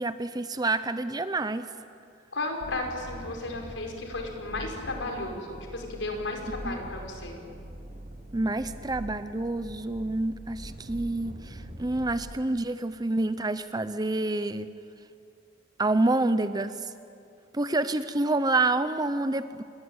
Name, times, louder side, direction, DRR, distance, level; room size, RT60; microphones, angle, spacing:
voice 1, 0.0-1.7 6.6-6.8 8.3-14.7 15.8-16.9 17.5-19.6, right 2 dB, 20° right, 12 dB, 0.7 m, -28 dB
voice 2, 2.3-7.4, left 2 dB, 80° left, 2 dB, 5.1 m, -34 dB
sound 1, 2.6-12.1, equal, 40° right, 2.9 m, -43 dB
27.5 x 22.0 x 8.9 m, 2.6 s
head